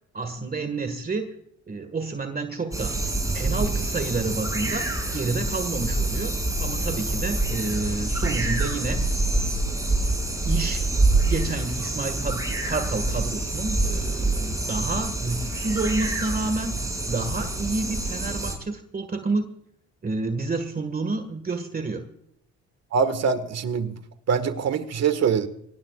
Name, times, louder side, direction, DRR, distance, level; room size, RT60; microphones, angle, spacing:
voice 1, 0.1-1.4 1.7-3.0 3.3-9.0 10.5-10.8 11.3-19.5 20.0-22.0, right 3 dB, 30° right, 8 dB, 1.9 m, -29 dB
sound 1, 2.7-18.5, right 2 dB, 10° right, 6.3 m, -26 dB
voice 2, 22.9-23.9 24.3-25.5, right 6 dB, 60° right, 10 dB, 1.8 m, -23 dB
24.5 x 18.5 x 2.5 m, 0.73 s
cardioid pair, 90°, 30 cm